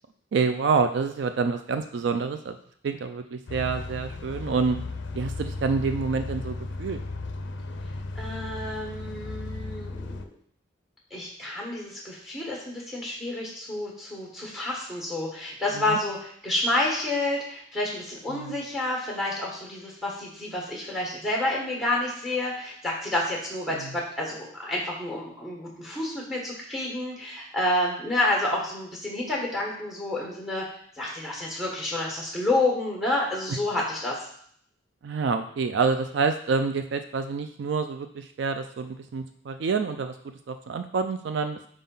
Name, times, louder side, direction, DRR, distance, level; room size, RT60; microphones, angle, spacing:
voice 1, 0.3-2.6 2.8-4.8 5.1-7.0 15.7-16.0 18.3-18.6 23.7-23.9 33.5-33.6 35.0-40.2 40.5-41.6, right 5 dB, 60° right, 8 dB, 0.3 m, -27 dB
sound 1, 3.5-10.3, left 3 dB, 60° left, 0.5 m, -35 dB
voice 2, 8.1-10.2 11.1-30.6 31.0-34.2, left 1 dB, ahead, -2 dB, 1.4 m, -29 dB
5.0 x 3.8 x 5.5 m, 0.63 s
head